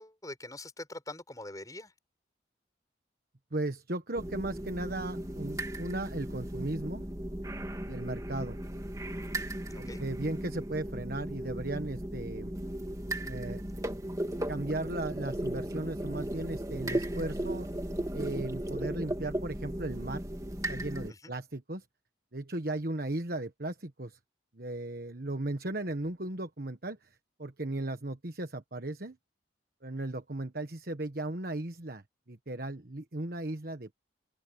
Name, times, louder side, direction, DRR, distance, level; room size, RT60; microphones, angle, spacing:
voice 1, 0.0-1.9 9.7-10.0 21.1-21.3, left 1 dB, 20° left, 7.3 m, -44 dB
voice 2, 3.5-7.1 7.9-8.6 9.8-12.5 13.2-13.6 14.5-17.7 18.1-20.2 20.7-21.8 22.3-24.2 24.5-27.0 27.4-29.2 29.8-34.0, right 2 dB, 55° right, 1.4 m, -36 dB
sound 1, 4.2-21.1, right 1 dB, 20° right, 1.9 m, -36 dB
open air
head